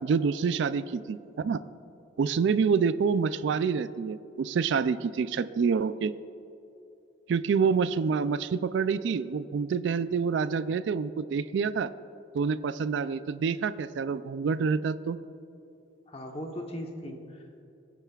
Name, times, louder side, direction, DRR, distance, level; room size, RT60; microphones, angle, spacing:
voice 1, 0.0-1.6 2.2-6.1 7.3-11.9 12.3-15.2, right 5 dB, 65° right, 14 dB, 0.3 m, -27 dB
voice 2, 16.1-17.6, equal, 30° left, 3 dB, 1.0 m, -39 dB
22.5 x 9.0 x 2.4 m, 2.7 s
head